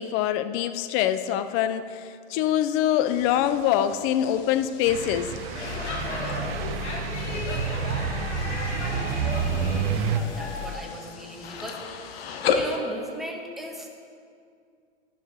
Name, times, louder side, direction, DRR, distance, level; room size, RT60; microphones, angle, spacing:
voice 1, 0.0-5.3, left 11 dB, 40° left, 11 dB, 0.5 m, -24 dB
sound 1, 3.0-12.8, left 6 dB, 60° left, 0.9 m, -35 dB
sound 2, 4.9-10.2, right 8 dB, 60° right, 0.7 m, -29 dB
Speech / Shout / Subway metro underground, 5.5-10.8, left 5 dB, 80° left, 1.2 m, -33 dB
voice 2, 10.0-11.9 12.5-13.9, equal, ahead, 0 dB, 1.1 m, -37 dB
11.5 x 6.7 x 3.6 m, 2.2 s
hypercardioid pair, 95°, 34 cm